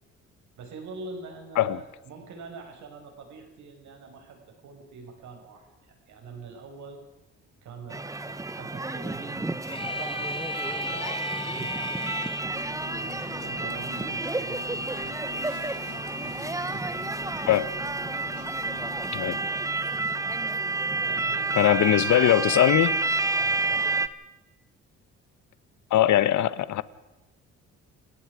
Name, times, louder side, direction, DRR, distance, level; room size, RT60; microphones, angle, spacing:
voice 1, 0.6-7.0 7.6-11.2 11.5-12.1 13.0-15.5 15.8-17.4 21.0-22.7 23.4-23.9, right 4 dB, 70° right, 6.0 m, -44 dB
sound 1, 7.9-24.1, right 3 dB, 10° right, 1.1 m, -30 dB
sound 2, 9.6-12.4, left 2 dB, 15° left, 1.9 m, -35 dB
sound 3, 12.5-19.2, left 10 dB, 90° left, 1.7 m, -45 dB
voice 2, 17.5-17.8 19.1-19.4 21.6-22.9 25.9-26.8, left 12 dB, 70° left, 1.1 m, -21 dB
29.5 x 18.0 x 5.0 m
cardioid pair, 90°, 30 cm